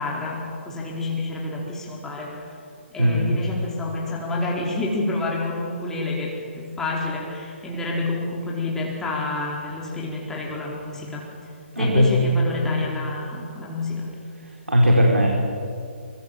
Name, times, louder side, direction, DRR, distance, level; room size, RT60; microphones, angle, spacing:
voice 1, 0.0-2.4 2.9-11.3 11.8-14.1, left 2 dB, 5° left, -3 dB, 4.4 m, -28 dB
voice 2, 3.0-3.3 11.8-12.2 14.7-15.3, equal, 85° right, -1 dB, 4.5 m, -18 dB
25.0 x 24.5 x 7.6 m, 2.4 s
figure-of-eight pair, 135°, 7 cm